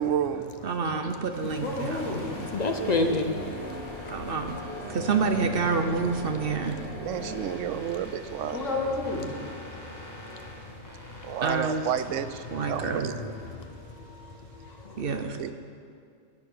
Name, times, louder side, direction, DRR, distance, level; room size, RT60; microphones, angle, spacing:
voice 1, 0.0-0.5 2.8-3.2 7.0-8.7 11.2-13.3 15.4-15.5, right 9 dB, 80° right, 12 dB, 0.9 m, -31 dB
voice 2, 0.6-2.1 4.1-4.6 4.9-6.8 11.4-11.8 12.5-13.1 15.0-15.4, right 5 dB, 55° right, 6 dB, 0.8 m, -28 dB
sound 1, 1.3-14.1, left 1 dB, 15° left, 2.3 m, -43 dB
voice 3, 1.6-2.3 8.5-9.3, left 2 dB, 75° left, -2 dB, 2.3 m, -30 dB
voice 4, 2.3-3.3 3.6-3.8 6.3-6.4 8.1-8.2 9.9-10.0 10.3-10.5 12.6-13.7 14.0-14.3 14.6-15.0, left 3 dB, 40° left, 5 dB, 0.7 m, -31 dB
sound 2, 2.3-7.4, right 1 dB, 25° right, 2.3 m, -40 dB
11.0 x 9.9 x 6.6 m, 2.3 s
omnidirectional pair, 1.3 m